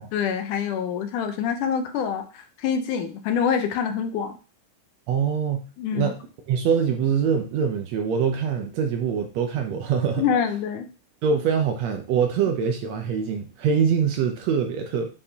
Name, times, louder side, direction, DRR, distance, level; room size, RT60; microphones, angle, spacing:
voice 1, 0.0-4.4 5.8-6.1 10.2-10.9, left 7 dB, 80° left, 7 dB, 2.3 m, -26 dB
voice 2, 5.1-5.6 5.9-6.1 6.5-10.2 11.2-15.1, right 7 dB, 75° right, 4 dB, 1.7 m, -24 dB
8.4 x 4.5 x 2.8 m, 0.35 s
omnidirectional pair, 3.6 m